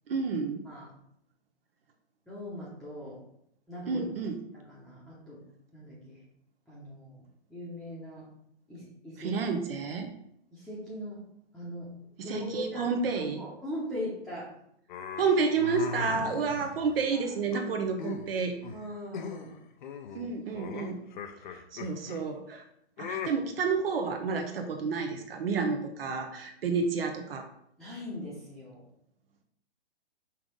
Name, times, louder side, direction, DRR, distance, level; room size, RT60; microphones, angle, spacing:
voice 1, 0.1-0.6 3.9-4.4 9.2-10.1 12.2-13.4 15.2-18.5 20.1-21.0 21.5-22.6 23.0-27.4, right 5 dB, 60° right, 4 dB, 1.0 m, -30 dB
voice 2, 2.3-3.2 3.7-4.1 4.5-5.4 5.7-6.2 6.7-7.2 7.5-8.3 8.7-9.3 10.5-11.2 11.5-11.9 12.2-14.5 16.3-16.4 17.1-17.3 18.7-19.6 20.2-20.3 27.8-28.8, left 1 dB, ahead, -11 dB, 1.0 m, -40 dB
sound 1, 14.9-17.0 17.5-18.3 18.6-18.8 19.1-19.5 19.8-22.2 23.0-23.3, left 6 dB, 45° left, 0.7 m, -39 dB
5.8 x 3.7 x 5.3 m, 0.72 s
hypercardioid pair, 160°, 33 cm